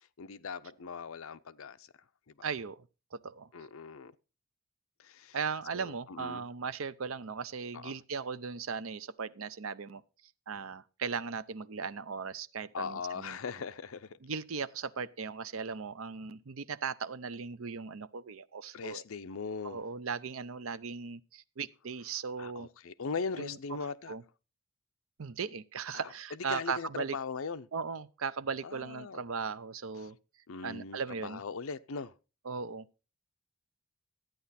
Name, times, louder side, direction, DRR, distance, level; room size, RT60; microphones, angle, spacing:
voice 1, 0.2-1.9 3.5-4.1 5.0-5.4 5.7-6.4 7.7-7.9 12.7-14.2 18.7-19.8 22.4-24.1 25.9-26.1 26.5-27.7 28.6-29.2 30.5-32.1, left 5 dB, 75° left, 0.6 m, -39 dB
voice 2, 2.4-2.9 3.1-3.5 5.3-10.0 10.5-13.4 14.2-19.0 19.6-22.7 23.4-23.6 24.1-24.2 25.2-27.2 27.7-30.2 30.6-31.4 32.4-33.0, right 5 dB, 70° right, 0.6 m, -38 dB
13.0 x 9.2 x 4.2 m
head